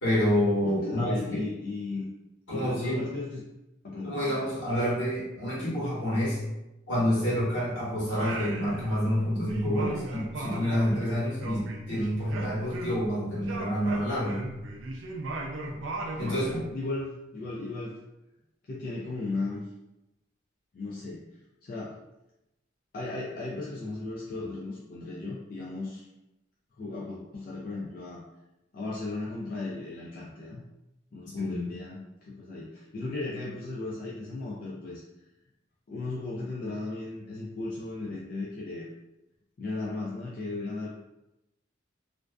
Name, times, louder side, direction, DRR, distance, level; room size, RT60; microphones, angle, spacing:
voice 1, 0.0-1.4 2.5-3.0 4.0-6.4 6.9-14.4 16.2-16.6 31.4-31.6, equal, 75° left, -7 dB, 1.1 m, -28 dB
voice 2, 0.6-2.1 2.5-3.4 3.8-4.5 16.2-18.0 18.7-19.7 20.7-21.3 21.6-22.0 22.9-26.1 26.8-28.2 28.7-30.6 31.1-35.0 35.9-38.9 39.6-40.9, left 3 dB, 45° left, -5 dB, 0.3 m, -36 dB
Singing, 8.1-9.2 9.5-13.1 13.4-16.6, right 2 dB, 75° right, 0.4 m, -37 dB
2.5 x 2.2 x 2.2 m, 0.93 s
head